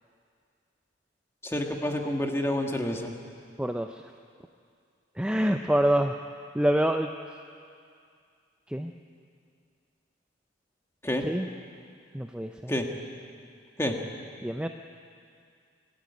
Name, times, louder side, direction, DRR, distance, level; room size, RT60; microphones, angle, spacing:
voice 1, 1.4-3.1 11.0-11.2 12.7-12.9 13.8-14.0, left 1 dB, 15° left, 2 dB, 1.6 m, -28 dB
voice 2, 3.6-4.0 5.2-6.2 6.5-7.1 8.7-8.9 11.2-11.5 12.1-12.7 14.4-14.7, right 1 dB, 5° right, 5 dB, 0.5 m, -26 dB
24.5 x 13.0 x 9.6 m, 2.3 s
head